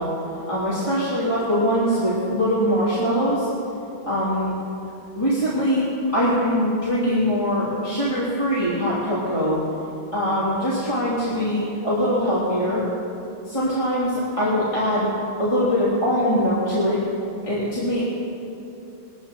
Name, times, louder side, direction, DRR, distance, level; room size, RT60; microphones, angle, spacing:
voice 1, 0.0-3.5 4.1-4.6 5.1-5.8 6.1-9.6 10.1-12.8 13.4-15.1 15.4-17.0 17.4-18.0, equal, 30° left, -11 dB, 3.1 m, -22 dB
21.0 x 14.0 x 3.0 m, 2.8 s
omnidirectional pair, 1.1 m